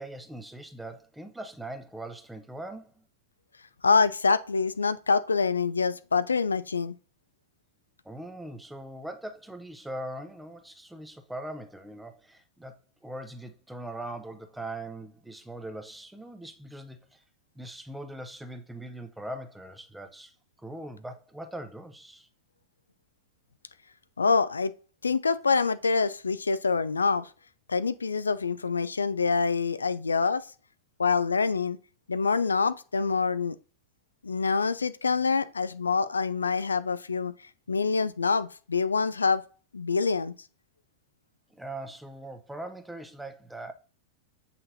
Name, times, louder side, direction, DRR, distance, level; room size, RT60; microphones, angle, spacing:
voice 1, 0.0-3.0 8.0-12.8 13.0-17.2 17.5-22.3 41.5-43.7, right 1 dB, 5° right, 0.7 m, -41 dB
voice 2, 3.8-7.0 24.2-24.7 25.0-27.3 27.7-30.5 31.0-31.8 32.1-33.6 34.2-37.3 37.7-39.4 39.7-40.3, left 4 dB, 75° left, 0.3 m, -26 dB
7.8 x 5.6 x 2.7 m
figure-of-eight pair, 90°, 0 cm